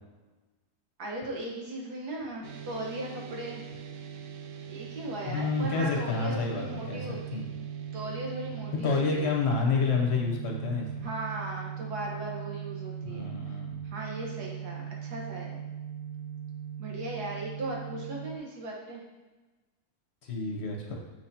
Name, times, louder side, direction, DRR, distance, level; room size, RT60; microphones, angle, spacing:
voice 1, 1.0-3.6 4.7-7.4 7.9-9.4 11.0-13.3 13.8-15.6 16.8-19.0, right 1 dB, 90° right, -2 dB, 1.8 m, -37 dB
sound 1, 2.4-18.4, right 8 dB, 65° right, 0.7 m, -40 dB
voice 2, 5.3-7.0 7.3-7.5 8.8-10.9 13.0-13.8 20.2-21.0, left 4 dB, 50° left, 0 dB, 0.9 m, -29 dB
7.0 x 5.8 x 2.8 m, 1.2 s
omnidirectional pair, 1.6 m